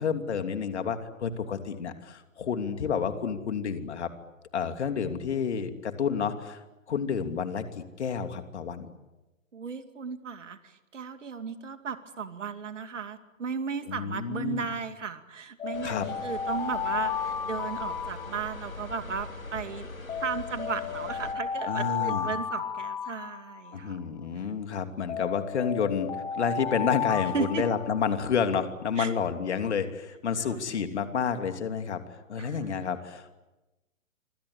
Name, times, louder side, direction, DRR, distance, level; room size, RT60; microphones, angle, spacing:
voice 1, 0.0-4.1 4.5-6.6 6.9-8.9 13.9-14.6 15.8-16.1 21.7-22.3 23.7-32.0 32.3-33.4, left 6 dB, 55° left, 8 dB, 3.0 m, -30 dB
voice 2, 9.5-19.9 20.2-24.0 27.3-27.7 29.0-29.1 30.4-30.7 32.4-32.9, right 6 dB, 60° right, 10 dB, 2.6 m, -35 dB
Alarm, 15.6-18.9 20.1-23.9 25.1-28.3, left 7 dB, 10° left, 2.0 m, -33 dB
sound 1, 15.7-21.3, left 3 dB, 80° left, 2.7 m, -42 dB
26.5 x 26.5 x 8.6 m, 1.0 s
figure-of-eight pair, 125°, 41 cm